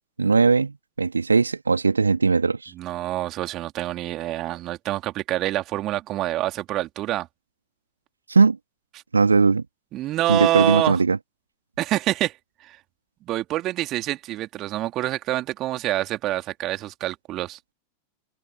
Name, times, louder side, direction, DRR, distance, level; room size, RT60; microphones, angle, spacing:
voice 1, 0.2-2.7 8.3-8.6 9.1-9.6 10.3-11.2, right 4 dB, 75° right, 2.6 m, -19 dB
voice 2, 2.7-7.3 9.9-11.0 11.8-12.3 12.6-12.8 13.2-17.6, right 15 dB, 35° right, 3.1 m, -26 dB
open air
figure-of-eight pair, 90°, 0 cm